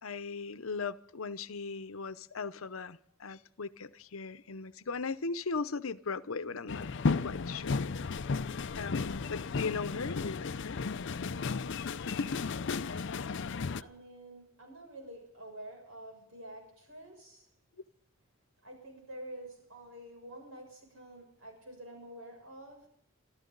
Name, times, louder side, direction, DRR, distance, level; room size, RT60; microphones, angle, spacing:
voice 1, 0.0-6.9 7.2-7.9 8.7-10.8 12.0-12.3, left 4 dB, 85° left, 0.8 m, -38 dB
sound 1, 6.7-13.8, left 4 dB, 60° left, 0.5 m, -34 dB
voice 2, 13.8-17.5 18.6-22.9, right 1 dB, 75° right, 7.2 m, -48 dB
25.5 x 13.5 x 4.0 m
head